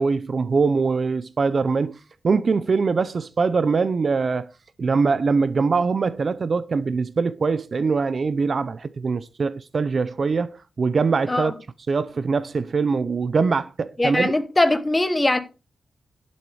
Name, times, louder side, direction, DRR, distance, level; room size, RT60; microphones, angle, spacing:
voice 1, 0.0-2.0 2.2-4.5 4.8-11.5 11.9-14.3, right 4 dB, 40° right, 0.5 m, -22 dB
voice 2, 14.0-15.4, left 2 dB, 15° left, 1.1 m, -21 dB
12.0 x 7.1 x 4.7 m
wide cardioid pair, 175°, 0 cm